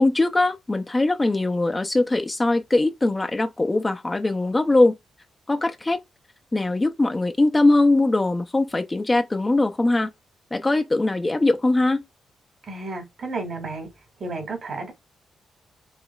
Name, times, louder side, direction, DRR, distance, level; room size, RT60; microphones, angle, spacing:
voice 1, 0.0-4.9 5.5-6.0 6.5-10.1 10.5-12.0, left 2 dB, 20° left, 0.5 m, -21 dB
voice 2, 12.7-13.9 14.2-14.9, right 3 dB, 55° right, 1.9 m, -32 dB
4.9 x 3.1 x 2.3 m
cardioid pair, 105°, 0 cm